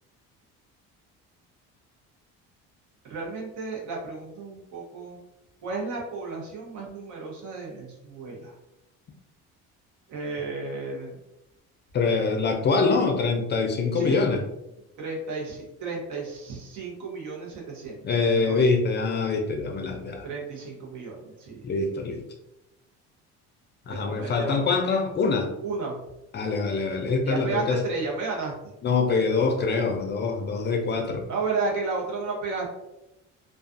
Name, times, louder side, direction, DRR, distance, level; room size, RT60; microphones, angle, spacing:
voice 1, 3.0-5.2 5.6-8.5 10.1-11.2 13.9-14.2 15.0-18.7 20.2-21.6 23.9-24.6 25.6-26.0 27.2-28.7 31.3-32.7, right 3 dB, 65° right, -2 dB, 1.0 m, -33 dB
voice 2, 11.9-14.4 18.0-20.3 21.6-22.2 23.9-25.5 26.3-27.8 28.8-31.3, left 4 dB, 35° left, 3 dB, 0.4 m, -24 dB
2.4 x 2.3 x 2.5 m, 0.91 s
supercardioid pair, 90°, 32 cm